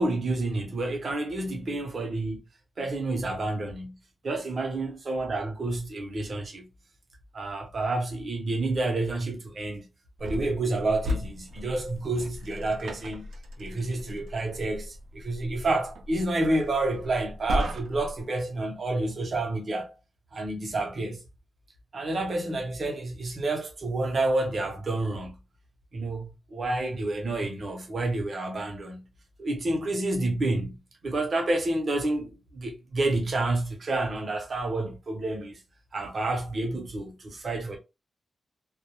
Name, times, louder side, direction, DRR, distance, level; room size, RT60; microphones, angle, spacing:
voice 1, 0.0-2.4 2.8-4.0 4.2-6.7 7.3-9.9 10.2-13.3 13.6-19.9 20.3-21.2 21.9-25.4 25.9-29.1 29.4-35.6 35.9-37.8, right 2 dB, 40° right, 0.7 m, -29 dB
sound 1, 10.2-18.2, equal, 75° right, 0.4 m, -36 dB
2.1 x 2.1 x 2.9 m
wide cardioid pair, 175°, 0 cm